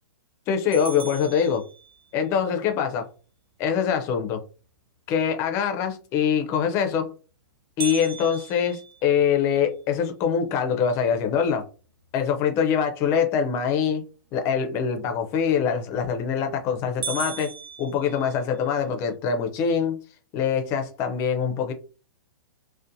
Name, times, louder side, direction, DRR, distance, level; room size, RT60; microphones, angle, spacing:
voice 1, 0.5-1.6 2.1-3.1 3.6-4.4 5.1-7.1 7.8-11.6 12.1-14.0 14.3-20.0 20.3-21.7, left 7 dB, 25° left, 0.4 m, -24 dB
sound 1, 0.7-2.3 7.8-10.0 10.5-10.6 11.1-11.2 11.8-12.1 15.8-16.2 16.6-16.7 17.0-18.8, right 6 dB, 70° right, 0.5 m, -37 dB
2.6 x 2.1 x 2.5 m
hypercardioid pair, 155°, 12 cm